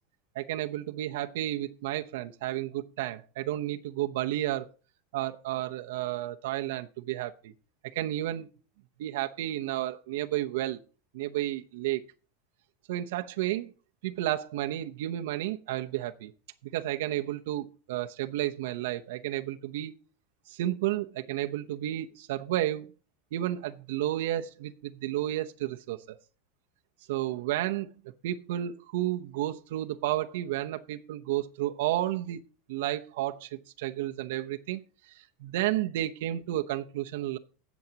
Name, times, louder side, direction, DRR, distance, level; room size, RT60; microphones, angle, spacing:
voice 1, 0.3-4.7 5.1-7.5 7.9-8.5 9.0-10.8 11.1-12.0 12.9-13.7 14.0-16.3 16.7-19.9 20.5-22.9 23.3-26.2 27.1-27.9 28.2-32.4 32.7-33.5 33.8-34.8 35.2-37.4, right 14 dB, 70° right, 7 dB, 0.8 m, -32 dB
18.5 x 7.2 x 2.9 m, 0.35 s
supercardioid pair, 175°, 0 cm